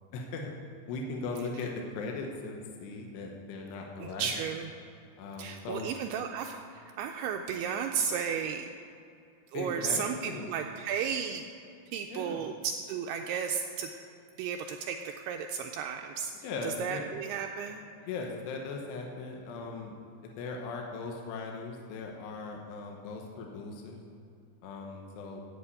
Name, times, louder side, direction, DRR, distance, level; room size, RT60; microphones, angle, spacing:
voice 1, 0.1-0.5 0.9-4.4 5.2-5.9 9.5-10.5 12.1-12.4 16.4-17.0 18.0-20.0 20.2-24.0 24.6-25.4, left 3 dB, 75° left, 1 dB, 3.2 m, -38 dB
voice 2, 4.0-4.7 5.4-8.7 9.5-11.4 11.9-13.9 14.4-16.3 16.6-17.8, right 7 dB, 85° right, 3 dB, 2.4 m, -34 dB
13.5 x 5.3 x 8.3 m, 2.5 s
omnidirectional pair, 5.0 m